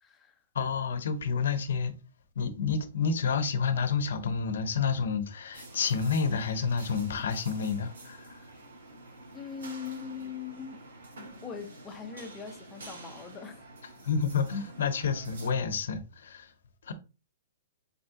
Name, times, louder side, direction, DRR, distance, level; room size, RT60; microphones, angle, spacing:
voice 1, 0.0-0.4 9.3-10.9 11.4-13.6 14.2-14.3, left 6 dB, 15° left, 0.8 m, -41 dB
voice 2, 0.5-1.9 2.4-8.3 14.0-16.5 16.9-17.0, left 5 dB, 80° left, 0.7 m, -29 dB
sound 1, 5.5-15.5, right 2 dB, 80° right, 1.7 m, -48 dB
4.1 x 3.4 x 2.8 m
hypercardioid pair, 155°, 0 cm